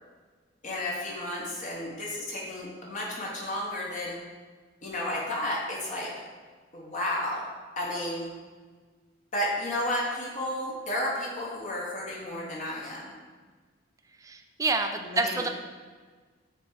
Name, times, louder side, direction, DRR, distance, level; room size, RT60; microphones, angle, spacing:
voice 1, 0.6-4.2 4.8-6.1 6.7-7.5 7.8-8.3 9.3-13.1 15.0-15.4, left 1 dB, 40° left, -4 dB, 1.0 m, -32 dB
voice 2, 14.2-15.5, right 3 dB, 15° right, 5 dB, 0.3 m, -28 dB
6.4 x 3.3 x 4.7 m, 1.5 s
head